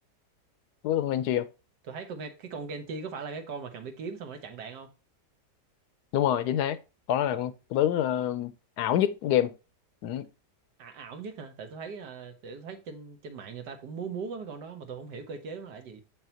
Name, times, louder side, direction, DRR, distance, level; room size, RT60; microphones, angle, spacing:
voice 1, 0.8-1.5 6.1-6.8 7.1-9.5 10.0-10.3, left 11 dB, 75° left, 1.1 m, -26 dB
voice 2, 1.8-4.9 10.8-16.0, right 5 dB, 80° right, 1.8 m, -39 dB
7.4 x 5.7 x 2.8 m
omnidirectional pair, 1.8 m